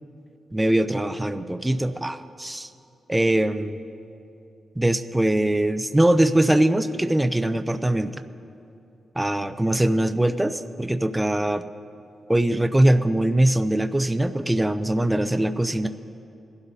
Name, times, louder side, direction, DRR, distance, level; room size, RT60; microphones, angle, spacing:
voice 1, 0.5-2.7 3.1-3.8 4.8-8.2 9.2-11.6 12.3-15.9, right 1 dB, 10° right, 10 dB, 0.5 m, -22 dB
22.5 x 12.0 x 2.8 m, 2.6 s
cardioid pair, 80°, 0 cm